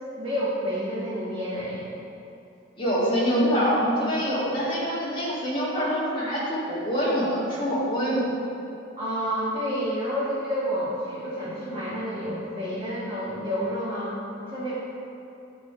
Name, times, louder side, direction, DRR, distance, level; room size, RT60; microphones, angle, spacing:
voice 1, 0.2-1.9 9.0-14.7, equal, 30° right, -12 dB, 1.7 m, -29 dB
voice 2, 2.8-8.3, equal, 25° left, -7 dB, 1.9 m, -25 dB
10.5 x 4.2 x 5.0 m, 2.8 s
head